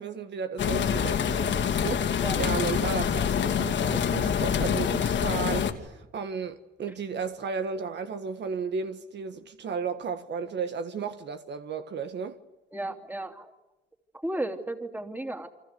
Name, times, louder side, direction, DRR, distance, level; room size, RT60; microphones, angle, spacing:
voice 1, 0.0-12.4, right 5 dB, 60° right, 1.6 m, -34 dB
sound 1, 0.6-5.7, left 8 dB, 70° left, 2.5 m, -26 dB
voice 2, 12.7-13.5 14.2-15.5, right 1 dB, 10° right, 3.3 m, -33 dB
28.5 x 25.5 x 7.0 m
cardioid pair, 90°, 20 cm